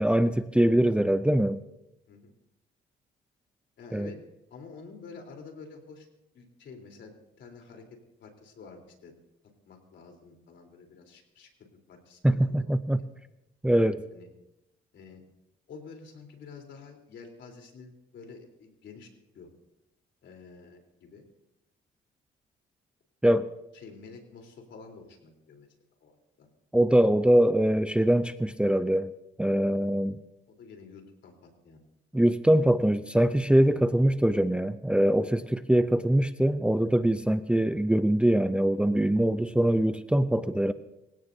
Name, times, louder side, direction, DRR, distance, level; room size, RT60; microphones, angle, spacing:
voice 1, 0.0-1.6 3.9-4.1 12.2-13.0 13.6-14.0 23.2-23.5 26.7-29.1 29.4-30.2 32.1-40.7, right 1 dB, 5° right, 11 dB, 0.6 m, -23 dB
voice 2, 3.8-4.2 4.5-6.1 6.3-9.1 9.7-13.1 14.1-14.3 14.9-15.2 15.7-19.1 19.3-19.5 20.2-21.2 23.7-25.7 26.0-26.5 30.5-31.8 32.1-32.3, left 4 dB, 65° left, 2 dB, 3.9 m, -49 dB
26.0 x 16.5 x 2.8 m, 0.90 s
cardioid pair, 90°, 20 cm